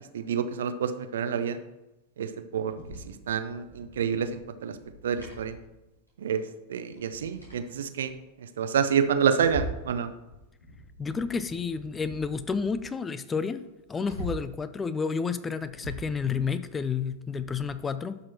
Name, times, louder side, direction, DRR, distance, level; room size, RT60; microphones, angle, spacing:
voice 1, 0.1-1.6 2.2-2.7 3.3-4.7 5.0-5.5 6.2-6.4 6.7-8.1 8.6-10.1, right 7 dB, 60° right, 10 dB, 0.6 m, -28 dB
sound 1, 2.7-6.2 6.4-6.5 6.9-8.1 8.6-9.9 10.2-12.8 13.2-13.3 13.6-14.6 15.2-17.7, right 1 dB, 85° left, 3.2 m, -43 dB
voice 2, 11.0-13.6 13.9-18.2, left 5 dB, 15° left, 13 dB, 0.4 m, -30 dB
11.5 x 6.0 x 2.9 m, 0.96 s
figure-of-eight pair, 90°, 0 cm